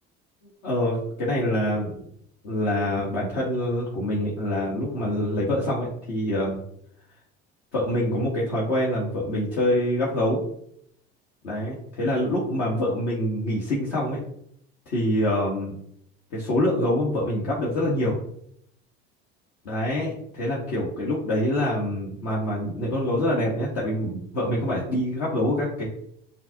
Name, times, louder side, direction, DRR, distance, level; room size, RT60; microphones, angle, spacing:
voice 1, 0.6-2.1 2.4-6.6 7.7-10.4 11.4-14.2 14.9-15.7 16.3-18.2 19.6-25.9, left 1 dB, 75° left, -6 dB, 1.3 m, -25 dB
5.7 x 2.7 x 2.8 m, 0.68 s
hypercardioid pair, 70°, 33 cm